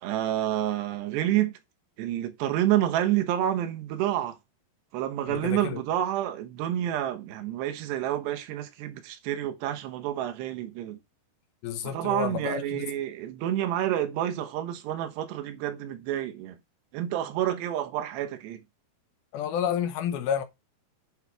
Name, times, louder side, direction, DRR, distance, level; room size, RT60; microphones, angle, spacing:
voice 1, 0.0-1.6 2.0-4.4 4.9-11.0 11.8-16.6 16.9-18.6, right 12 dB, 85° right, 3.3 m, -29 dB
voice 2, 5.3-5.8 11.6-12.9 19.3-20.4, left 8 dB, 75° left, 2.8 m, -30 dB
9.0 x 5.7 x 4.7 m
omnidirectional pair, 4.7 m